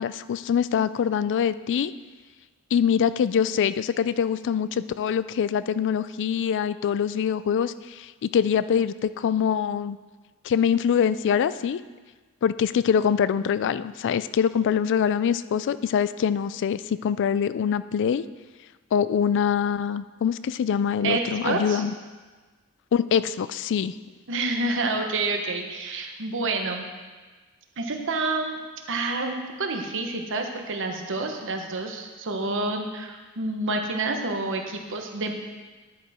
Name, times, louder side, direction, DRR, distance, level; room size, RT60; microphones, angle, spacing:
voice 1, 0.0-1.9 2.7-10.0 10.4-11.8 12.4-18.2 18.9-21.9 22.9-23.9, left 7 dB, 55° left, 15 dB, 0.3 m, -24 dB
voice 2, 21.0-21.8 24.3-26.9 27.8-28.6 28.9-35.3, right 3 dB, 60° right, 4 dB, 1.1 m, -28 dB
10.5 x 8.9 x 3.6 m, 1.3 s
head